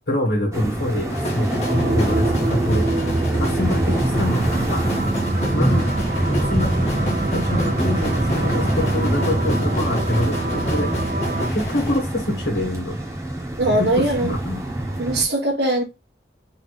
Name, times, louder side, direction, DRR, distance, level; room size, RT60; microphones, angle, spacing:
voice 1, 0.1-3.1 3.4-4.9 5.5-5.9 6.3-7.0 7.3-10.9 11.4-13.0 13.7-14.6, left 1 dB, 70° left, 1.3 m, -26 dB
sound 1, 0.5-15.2, right 1 dB, 15° right, 1.1 m, -25 dB
sound 2, 1.1-12.0, left 1 dB, 40° left, 1.4 m, -31 dB
sound 3, 1.6-11.5, right 2 dB, 50° right, 0.5 m, -26 dB
voice 2, 13.6-14.3 15.0-15.8, right 1 dB, 75° right, 1.4 m, -20 dB
3.7 x 3.1 x 4.0 m
head